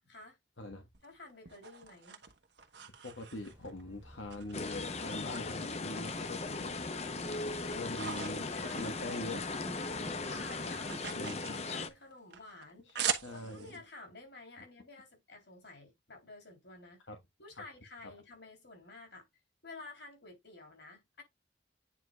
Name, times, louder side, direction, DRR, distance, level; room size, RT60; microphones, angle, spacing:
voice 1, 0.1-0.4 1.0-2.3 7.7-7.9 8.4-9.5 9.9-12.9 13.3-17.0 17.4-19.3 19.6-21.2, left 2 dB, 65° left, 3.7 m, -52 dB
sound 1, 0.9-3.8 4.3-5.4 5.7-6.7 7.1-9.7 10.0-13.8, right 8 dB, 65° right, 1.4 m, -42 dB
voice 2, 3.0-6.9 7.7-8.4 8.7-9.4 11.1-11.6 12.8-13.8 17.1-17.2, left 1 dB, 85° left, 1.5 m, -43 dB
Boat Water vehicle, 3.3-11.0, right 1 dB, 15° right, 0.9 m, -53 dB
sound 2, 4.5-11.9, left 3 dB, 35° left, 0.7 m, -38 dB
9.3 x 4.9 x 2.4 m
head